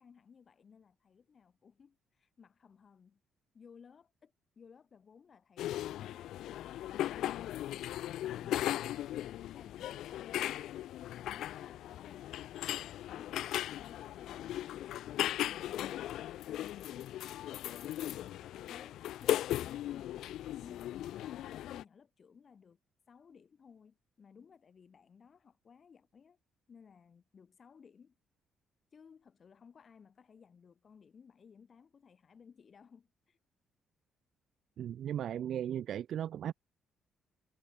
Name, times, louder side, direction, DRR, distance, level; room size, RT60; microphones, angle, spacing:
voice 1, 0.0-3.2 3.5-6.4 6.8-10.7 11.1-12.4 12.8-15.2 15.5-17.4 17.6-20.3 20.6-22.8 23.1-26.4 26.7-28.2 28.9-33.4, left 6 dB, 45° left, 7.4 m, -59 dB
sound 1, 5.6-21.8, left 13 dB, 80° left, 1.0 m, -37 dB
voice 2, 34.8-36.5, right 10 dB, 70° right, 0.6 m, -36 dB
cardioid pair, 90°, 0 cm